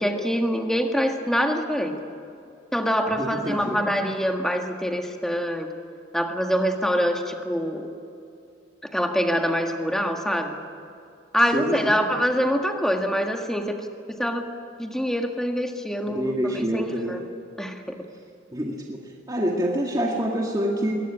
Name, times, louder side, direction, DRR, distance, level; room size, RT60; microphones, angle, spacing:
voice 1, 0.0-2.0 2.7-5.7 6.1-7.9 8.9-10.6 11.3-14.5 14.8-17.2 17.6-17.8, equal, 5° left, 4 dB, 1.7 m, -25 dB
voice 2, 3.2-3.8 11.5-12.0 16.1-17.2 18.5-19.0 19.3-20.9, equal, 20° right, -1 dB, 2.0 m, -26 dB
22.5 x 18.0 x 10.0 m, 2.6 s
head